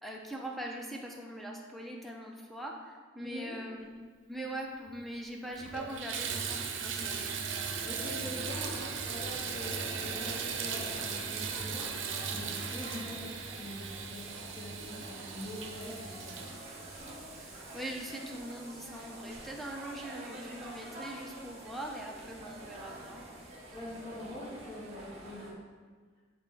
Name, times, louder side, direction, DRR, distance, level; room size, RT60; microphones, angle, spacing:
voice 1, 0.0-3.9 4.3-7.3 17.4-23.3, right 1 dB, ahead, 0 dB, 0.7 m, -42 dB
voice 2, 3.2-3.5 7.8-11.9 12.3-16.5 23.7-25.6, left 1 dB, 25° left, -8 dB, 2.1 m, -44 dB
Water tap faucet / Bathtub (filling or washing), 4.9-5.0 5.4-17.8 18.5-18.6 19.1-19.2, right 6 dB, 65° right, 0.7 m, -38 dB
sound 1, 8.3-25.5, right 1 dB, 35° right, 1.4 m, -47 dB
9.5 x 4.2 x 3.4 m, 1.5 s
head